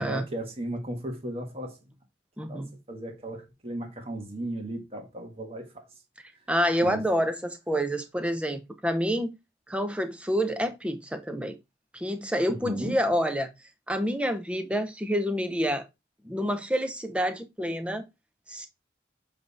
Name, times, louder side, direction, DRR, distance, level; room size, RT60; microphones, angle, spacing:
voice 1, 0.0-1.8 2.5-5.8 6.8-7.1 12.5-12.9, right 1 dB, 30° right, 1.5 m, -35 dB
voice 2, 2.4-2.7 6.5-9.3 9.7-11.6 11.9-13.5 13.9-15.8 16.2-18.0 18.5-18.7, equal, 5° right, 0.7 m, -28 dB
7.6 x 3.4 x 4.0 m
head